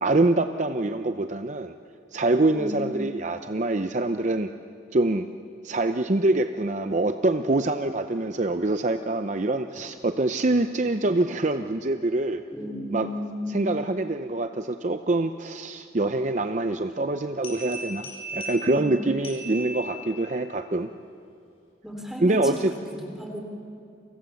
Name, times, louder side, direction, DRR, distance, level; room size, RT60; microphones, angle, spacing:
voice 1, 0.0-1.7 2.1-4.5 4.9-5.3 5.6-12.4 12.9-13.1 13.5-20.9 22.2-22.7, right 2 dB, 40° right, 8 dB, 0.6 m, -25 dB
voice 2, 2.5-3.0 12.5-13.7 18.7-19.1 21.8-23.4, equal, ahead, 1 dB, 3.3 m, -34 dB
sound 1, 17.4-20.4, right 1 dB, 30° left, 7.2 m, -38 dB
29.5 x 24.0 x 7.1 m, 2.5 s
head